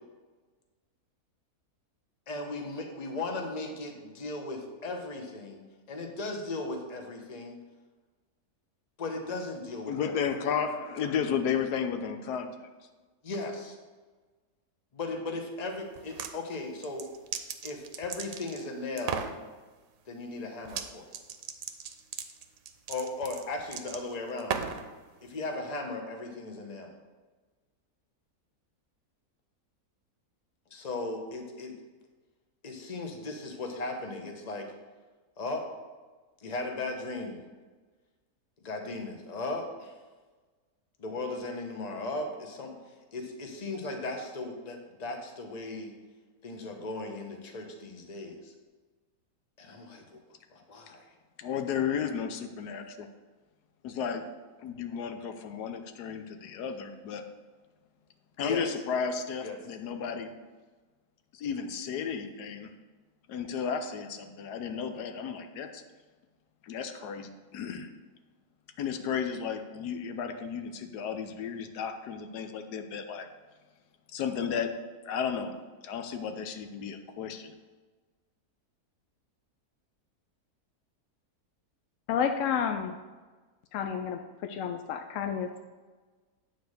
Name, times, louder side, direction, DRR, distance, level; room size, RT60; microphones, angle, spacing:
voice 1, 2.3-5.6 5.9-7.6 9.0-10.1 13.2-13.8 14.9-17.1 17.6-19.3 20.1-21.1 22.9-24.6 25.2-26.9 30.7-31.7 32.6-34.7 35.4-35.6 36.4-37.4 38.6-39.9 41.0-42.7 43.1-45.9 46.4-48.5 49.6-50.2 50.5-51.1 58.4-58.6 59.4-59.6, left 2 dB, 30° left, 3 dB, 1.0 m, -37 dB
voice 2, 9.9-12.7 51.4-53.1 53.8-54.3 54.6-57.2 58.4-60.3 61.3-62.7 63.3-65.8 66.6-67.9 68.8-73.3 74.1-74.8 75.0-75.5 75.8-77.5, left 7 dB, 90° left, 7 dB, 1.3 m, -33 dB
sound 1, 16.0-16.3 16.8-18.6 19.0-19.4 20.7-20.9 21.1-24.9, right 7 dB, 70° right, 1.0 m, -36 dB
voice 3, 82.1-83.0 83.7-85.5, left 7 dB, 70° left, 5 dB, 0.8 m, -30 dB
9.1 x 4.3 x 6.4 m, 1.3 s
omnidirectional pair, 1.7 m